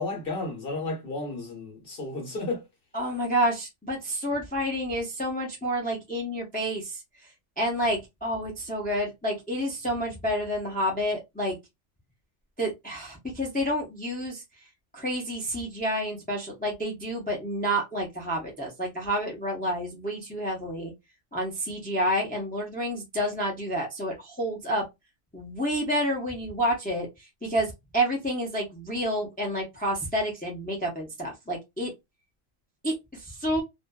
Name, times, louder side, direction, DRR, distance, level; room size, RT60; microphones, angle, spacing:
voice 1, 0.0-2.6, left 2 dB, 50° left, 1.0 m, -33 dB
voice 2, 2.9-7.0 7.6-11.6 12.6-14.4 14.9-20.9 21.3-24.8 25.3-27.1 27.4-31.9 32.8-32.9 33.2-33.6, equal, 10° left, 0.5 m, -29 dB
2.5 x 2.4 x 2.2 m
omnidirectional pair, 1.3 m